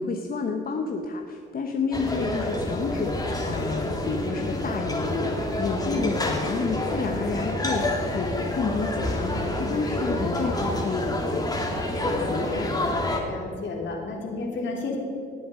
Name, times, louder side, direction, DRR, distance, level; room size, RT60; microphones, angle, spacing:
voice 1, 0.0-13.0, left 4 dB, 45° left, 3 dB, 1.0 m, -30 dB
sound 1, 1.9-13.2, left 1 dB, 20° left, 2.2 m, -28 dB
voice 2, 12.1-12.8 13.3-15.0, left 3 dB, 65° left, 0 dB, 3.1 m, -33 dB
18.5 x 7.8 x 5.0 m, 2.7 s
cardioid pair, 90°, 20 cm